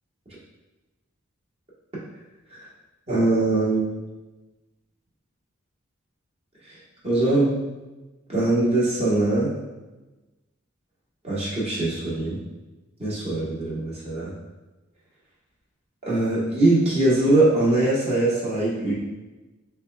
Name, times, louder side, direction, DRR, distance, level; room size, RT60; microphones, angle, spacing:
voice 1, 3.1-3.8 7.0-7.6 8.3-9.5 11.2-12.4 13.0-14.3 16.0-18.9, right 2 dB, 30° right, -8 dB, 1.2 m, -22 dB
6.6 x 2.3 x 2.3 m, 1.1 s
head